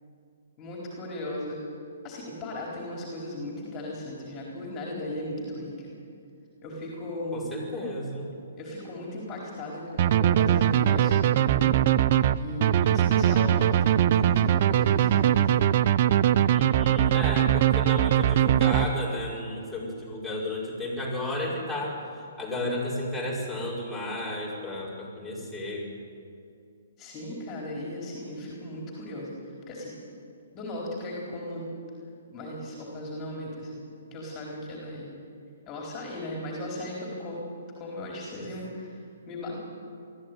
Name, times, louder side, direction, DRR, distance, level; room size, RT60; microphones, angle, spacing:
voice 1, 0.6-1.6 2.0-6.0 6.6-7.5 8.6-11.8 12.4-15.6 16.6-16.8 27.0-29.9 30.5-31.7 32.3-35.2 35.7-37.5 37.8-39.6, left 1 dB, 25° left, -2 dB, 4.3 m, -37 dB
voice 2, 7.3-8.3 16.5-25.9 38.4-38.5, left 1 dB, ahead, -7 dB, 5.5 m, -33 dB
sound 1, 10.0-19.3, right 11 dB, 45° right, 0.6 m, -21 dB
22.0 x 14.0 x 9.4 m, 2.4 s
figure-of-eight pair, 125°, 0 cm